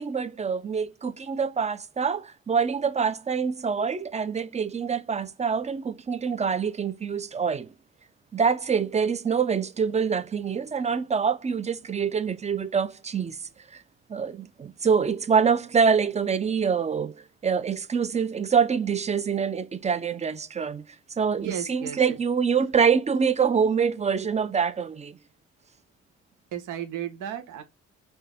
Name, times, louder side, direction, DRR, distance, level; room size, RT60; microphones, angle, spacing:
voice 1, 0.0-7.7 8.3-13.4 13.7-13.8 14.1-20.8 21.2-25.2, right 6 dB, 25° right, 0.5 m, -25 dB
voice 2, 21.3-22.2 26.5-27.6, right 10 dB, 85° right, 1.1 m, -34 dB
4.4 x 2.7 x 3.5 m
cardioid pair, 90°, 30 cm